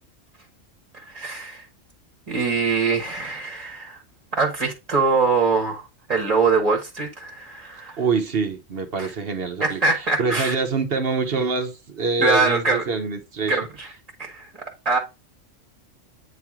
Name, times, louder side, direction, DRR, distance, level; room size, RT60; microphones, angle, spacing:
voice 1, 0.9-1.7 2.3-4.0 4.3-8.0 9.0-9.1 9.6-10.5 12.2-12.8 13.5-13.9 14.2-14.5 14.8-15.0, right 4 dB, 30° right, 1.4 m, -23 dB
voice 2, 8.0-13.6, right 4 dB, 50° right, 1.1 m, -25 dB
9.0 x 3.0 x 3.6 m
omnidirectional pair, 1.3 m